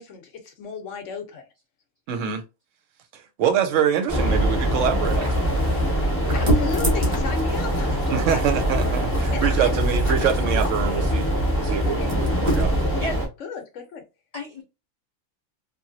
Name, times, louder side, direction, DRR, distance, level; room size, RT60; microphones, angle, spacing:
voice 1, 0.0-1.4 6.3-8.4 9.3-10.8 11.8-12.1 13.4-14.0, left 5 dB, 65° left, 1.0 m, -34 dB
voice 2, 2.1-2.4 3.1-5.5 8.1-11.3 11.6-12.7, right 8 dB, 65° right, 0.9 m, -25 dB
sound 1, 4.1-13.3, equal, 10° left, 0.8 m, -23 dB
sound 2, 5.0-12.8, equal, 25° right, 1.1 m, -29 dB
voice 3, 12.7-13.2 14.3-14.6, left 2 dB, 45° left, 0.5 m, -33 dB
2.9 x 2.5 x 2.6 m
omnidirectional pair, 1.5 m